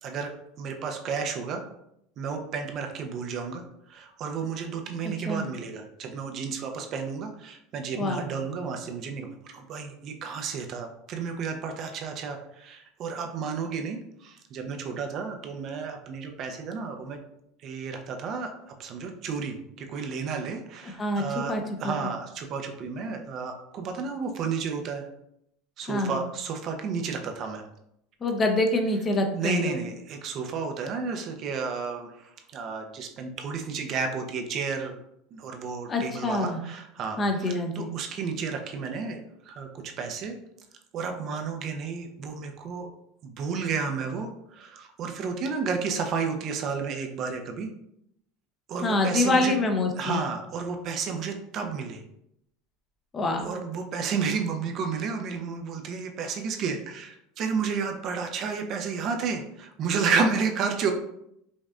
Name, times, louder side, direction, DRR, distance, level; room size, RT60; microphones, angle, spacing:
voice 1, 0.0-1.6 2.2-17.2 17.6-25.1 25.8-27.7 29.3-35.0 35.3-40.4 40.9-42.9 43.2-47.7 48.7-49.6 50.0-52.0 53.4-60.9, right 5 dB, 45° right, 4 dB, 0.5 m, -32 dB
voice 2, 8.0-8.3 21.0-21.9 25.9-26.2 28.2-29.8 35.9-36.6 37.2-37.9 48.8-50.2 53.1-53.5, left 2 dB, 25° left, 4 dB, 0.6 m, -26 dB
5.2 x 2.5 x 2.4 m, 0.76 s
supercardioid pair, 120°, 0 cm